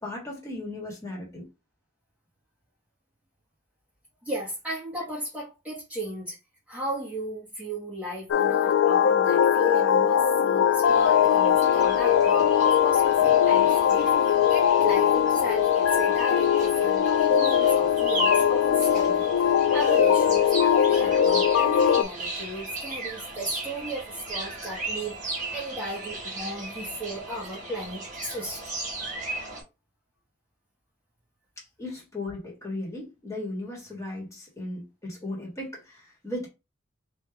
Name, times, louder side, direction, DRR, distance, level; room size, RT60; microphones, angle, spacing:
voice 1, 0.0-1.5 31.6-36.5, left 2 dB, 15° left, 1.6 m, -36 dB
voice 2, 4.2-6.4 6.7-28.6, right 1 dB, 5° right, 1.4 m, -35 dB
sound 1, 8.3-22.0, left 9 dB, 70° left, 0.3 m, -21 dB
sound 2, 10.8-29.6, right 2 dB, 40° right, 1.5 m, -36 dB
3.6 x 2.7 x 3.5 m
head